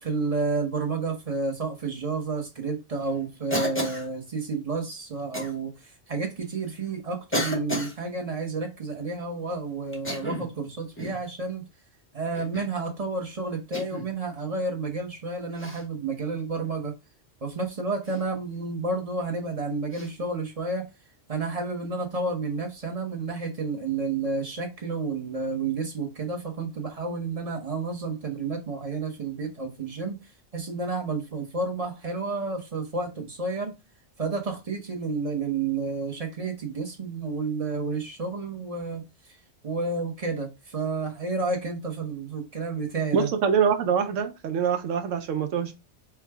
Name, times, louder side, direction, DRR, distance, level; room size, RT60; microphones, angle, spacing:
voice 1, 0.0-5.7 6.1-11.6 12.1-16.9 17.4-20.8 21.3-30.2 30.5-33.7 34.2-39.0 39.6-43.3, right 3 dB, 35° right, 0.8 m, -30 dB
Cough, 3.5-4.1 5.3-5.5 6.4-6.5 7.3-8.0 9.9-10.5 11.0-11.2 12.3-12.7 13.7-14.1 15.6-15.8 18.0-18.2 19.9-20.1, equal, 15° left, 0.6 m, -32 dB
voice 2, 43.1-45.7, right 7 dB, 85° right, 1.0 m, -24 dB
4.6 x 2.2 x 3.4 m
omnidirectional pair, 1.3 m